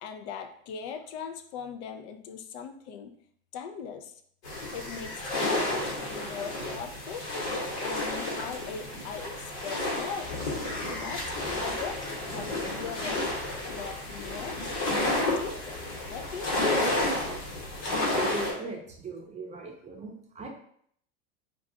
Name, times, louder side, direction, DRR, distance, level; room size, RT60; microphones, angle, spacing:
voice 1, 0.0-3.2 3.5-4.1 4.7-7.2 7.8-10.3 10.9-12.0 12.3-13.3 13.7-14.6 14.9-15.8 16.0-16.9, left 6 dB, 75° left, 6 dB, 0.5 m, -40 dB
sound 1, 4.4-18.5, left 2 dB, 90° left, 1.3 m, -31 dB
Traffic noise roadway noise, 10.2-18.2, left 4 dB, 40° left, 0.7 m, -47 dB
voice 2, 18.2-20.5, right 3 dB, 20° right, 2 dB, 0.5 m, -40 dB
2.3 x 2.3 x 3.8 m, 0.65 s
supercardioid pair, 115°, 33 cm